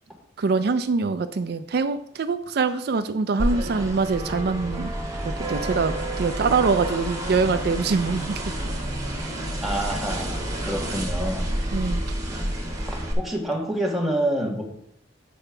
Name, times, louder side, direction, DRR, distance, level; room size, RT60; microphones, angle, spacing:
voice 1, 0.4-4.9 5.2-8.4 11.7-12.0, right 4 dB, 60° right, 10 dB, 0.4 m, -24 dB
sound 1, 3.4-13.1, right 1 dB, 20° right, 1.7 m, -29 dB
voice 2, 9.6-11.5 12.3-14.6, right 1 dB, ahead, -2 dB, 1.7 m, -28 dB
8.5 x 4.4 x 5.8 m, 0.69 s
head